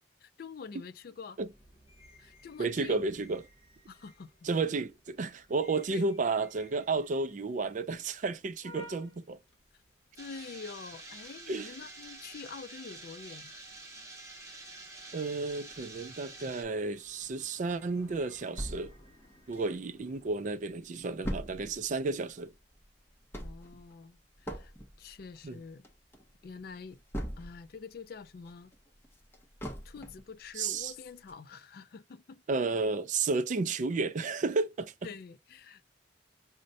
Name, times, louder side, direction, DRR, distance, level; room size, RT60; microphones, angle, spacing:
voice 1, 0.2-1.4 2.2-3.1 3.9-4.3 5.9-6.1 10.1-13.5 23.3-24.7 25.0-25.9 26.4-27.0 27.4-28.7 29.8-32.4 35.0-35.8, left 5 dB, 55° left, 0.4 m, -46 dB
sound 1, 1.4-20.3, left 1 dB, 35° left, 1.2 m, -59 dB
voice 2, 2.6-3.5 4.4-9.4 11.5-11.7 15.1-18.9 19.5-22.5 25.4-25.6 30.6-30.9 32.5-34.9, right 3 dB, 45° right, 0.4 m, -32 dB
sound 2, 10.2-16.6, right 2 dB, 15° right, 1.0 m, -48 dB
sound 3, 18.6-20.1 20.5-20.6 20.8-27.8 28.2-30.3 30.8-30.9 31.3-31.4, equal, 15° left, 0.7 m, -41 dB
5.1 x 2.1 x 2.6 m
head